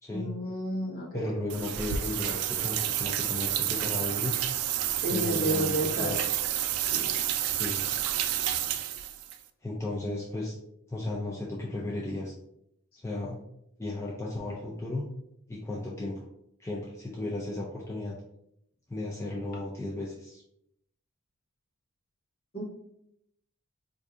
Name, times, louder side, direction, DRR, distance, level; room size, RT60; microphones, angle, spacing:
voice 1, 0.1-1.3 5.0-6.1 6.9-7.1 22.5-22.6, right 1 dB, 45° left, -3 dB, 1.1 m, -31 dB
voice 2, 1.1-4.3 5.1-6.2 7.5-7.8 9.6-10.6 10.9-12.3 13.0-13.4 13.8-15.1 15.5-16.3 16.6-18.2 18.9-20.4, left 2 dB, 10° left, -5 dB, 0.4 m, -35 dB
sound 1, 1.5-9.4, right 11 dB, 70° right, 0.3 m, -30 dB
4.4 x 2.6 x 2.4 m, 0.77 s
head